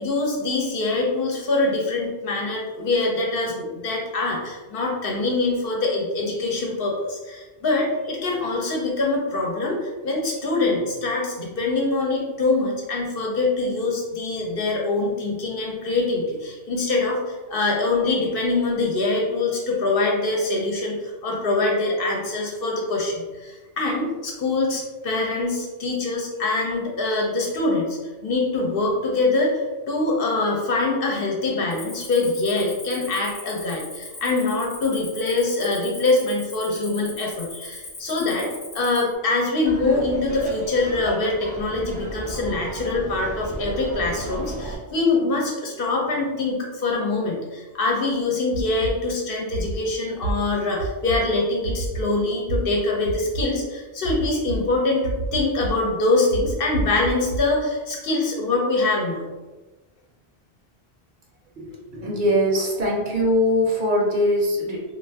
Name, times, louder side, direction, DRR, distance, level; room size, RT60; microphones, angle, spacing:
voice 1, 0.0-59.2, left 2 dB, 65° left, -1 dB, 0.8 m, -24 dB
Cricket, 31.7-39.1, left 2 dB, 30° left, 0.6 m, -39 dB
Laughter, 39.6-44.7, right 1 dB, 10° right, 0.3 m, -33 dB
sound 1, 48.5-48.9 49.5-49.8 50.2-50.3 50.8-51.2 51.6-52.0 52.5-52.6 53.0-53.4 54.0-54.6 55.0-55.7 56.3-57.4, right 4 dB, 85° right, 0.9 m, -28 dB
voice 2, 61.6-64.8, left 1 dB, 55° right, -2 dB, 0.7 m, -22 dB
2.5 x 2.3 x 3.3 m, 1.2 s
omnidirectional pair, 1.1 m